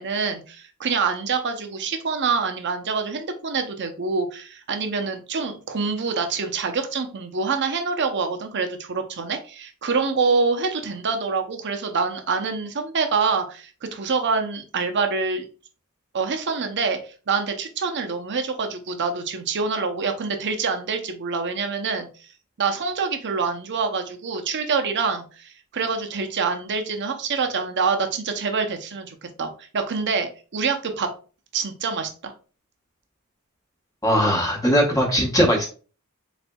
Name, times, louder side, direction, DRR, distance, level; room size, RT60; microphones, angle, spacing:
voice 1, 0.0-15.5 16.1-22.1 22.6-31.1 31.5-32.3, right 4 dB, 55° right, 6 dB, 0.7 m, -26 dB
voice 2, 34.0-35.7, equal, 15° left, 0 dB, 1.0 m, -19 dB
4.2 x 4.0 x 2.3 m, 0.36 s
head